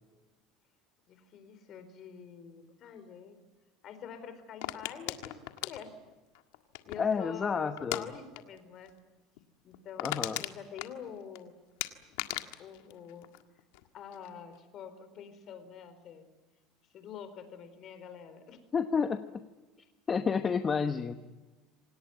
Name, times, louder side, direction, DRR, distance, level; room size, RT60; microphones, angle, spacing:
voice 1, 1.1-3.4 3.8-5.4 5.6-5.9 6.8-8.9 9.6-10.1 10.4-11.5 12.6-13.3 13.9-16.3 16.9-18.6, left 7 dB, 45° left, 10 dB, 4.2 m, -46 dB
sound 1, 4.6-7.2 7.8-8.0 8.3-8.6 8.8-8.9 9.4-9.5 9.7-11.4 11.8-13.8 14.1-14.6, left 18 dB, 80° left, 1.7 m, -38 dB
voice 2, 7.0-8.1 10.0-10.4 18.7-19.5 20.1-21.1, left 6 dB, 25° left, 8 dB, 1.0 m, -30 dB
27.0 x 18.0 x 9.3 m, 1.2 s
supercardioid pair, 130°, 0 cm